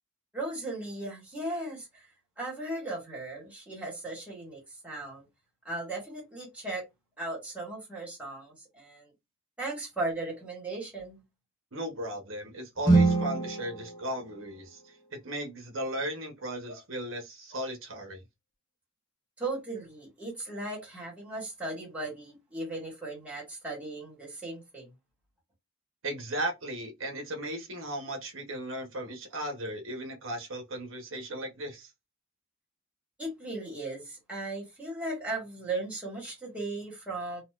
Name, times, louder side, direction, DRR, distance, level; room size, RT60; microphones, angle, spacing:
voice 1, 0.3-2.1 2.4-5.2 5.6-6.8 7.2-9.1 9.6-11.2 19.4-24.9 33.2-37.4, right 2 dB, 5° right, 1.6 m, -37 dB
voice 2, 11.7-18.2 26.0-31.9, right 1 dB, 70° right, 1.0 m, -36 dB
sound 1, 12.8-15.0, right 3 dB, 20° left, 0.8 m, -26 dB
4.0 x 2.3 x 2.4 m
head